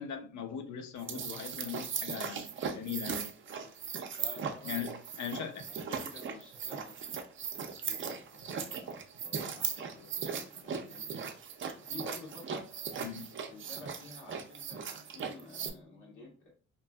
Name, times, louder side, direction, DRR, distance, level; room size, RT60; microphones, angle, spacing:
voice 1, 0.0-3.4 4.6-4.9 5.2-5.6 13.0-13.3, left 8 dB, 70° left, 0.6 m, -40 dB
sound 1, 1.0-15.7, right 6 dB, 40° right, 0.5 m, -38 dB
voice 2, 4.1-5.0 5.3-11.1 11.7-12.7 13.3-16.5, left 3 dB, 85° left, 1.2 m, -51 dB
3.0 x 2.5 x 2.3 m
cardioid pair, 90°, 30 cm